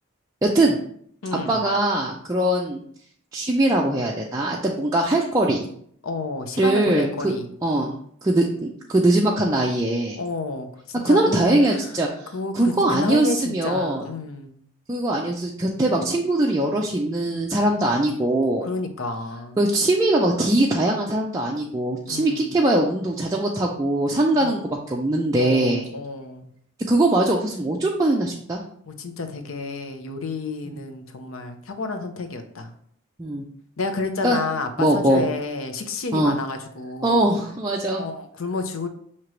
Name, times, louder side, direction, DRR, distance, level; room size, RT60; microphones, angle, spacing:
voice 1, 0.4-0.8 1.5-2.8 3.3-5.7 6.6-7.3 7.6-7.9 8.2-10.2 11.0-12.3 12.5-14.1 14.9-18.7 19.6-25.9 26.9-28.6 30.7-30.8 33.2-33.4 34.2-34.4 34.8-35.2 36.1-36.3 37.0-38.0, right 1 dB, 15° right, -2 dB, 0.4 m, -21 dB
voice 2, 1.2-1.6 6.0-7.5 10.2-11.9 12.3-14.6 18.6-19.6 22.1-22.5 24.4-24.6 25.4-26.5 28.9-32.7 33.8-37.3 38.0-38.9, left 3 dB, 75° left, 6 dB, 0.6 m, -30 dB
6.1 x 2.9 x 3.0 m, 0.64 s
head